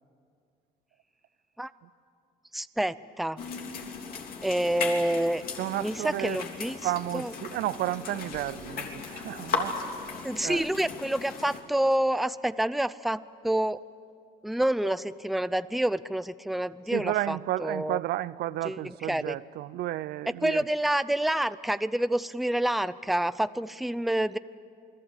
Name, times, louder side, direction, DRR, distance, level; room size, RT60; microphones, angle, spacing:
voice 1, 2.5-3.4 4.4-5.4 5.8-6.8 7.1-7.3 10.2-13.8 14.4-18.0 18.6-19.4 20.4-24.4, right 1 dB, ahead, 0.6 m, -28 dB
sound 1, 3.4-11.6, left 5 dB, 60° left, 3.4 m, -37 dB
voice 2, 5.6-6.4 6.8-10.0 10.4-10.6 16.9-20.6, right 15 dB, 75° right, 0.6 m, -32 dB
28.5 x 21.0 x 8.3 m
cardioid pair, 110°, 17 cm